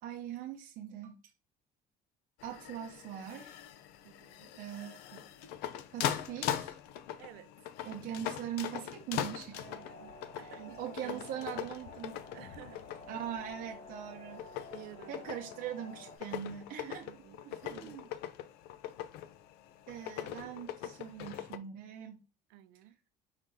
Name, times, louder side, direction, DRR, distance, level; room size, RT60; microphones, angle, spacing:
voice 1, 0.0-1.2 2.4-3.6 4.6-5.2 5.9-6.8 7.8-9.6 10.4-12.2 13.1-14.5 15.1-17.2 17.6-18.1 19.9-22.2, right 10 dB, 55° right, 0.7 m, -42 dB
sound 1, 2.4-21.6, left 11 dB, 85° left, 0.5 m, -41 dB
voice 2, 4.0-4.6 7.2-7.5 9.5-11.5 12.3-13.0 14.7-15.3 17.0-18.0 22.5-23.0, right 15 dB, 85° right, 0.4 m, -53 dB
sound 2, 9.6-16.2, left 3 dB, 45° left, 1.0 m, -51 dB
4.8 x 3.7 x 2.7 m
cardioid pair, 140°, 16 cm